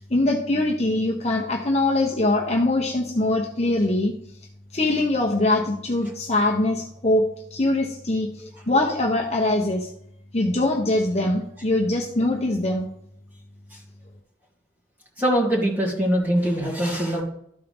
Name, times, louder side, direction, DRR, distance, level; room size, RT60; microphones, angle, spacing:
voice 1, 0.1-4.1 4.7-7.2 7.5-9.9 10.3-12.9, left 2 dB, 35° left, 0 dB, 1.0 m, -22 dB
voice 2, 15.2-17.2, equal, 10° right, -4 dB, 2.4 m, -23 dB
13.0 x 4.6 x 3.6 m, 0.72 s
head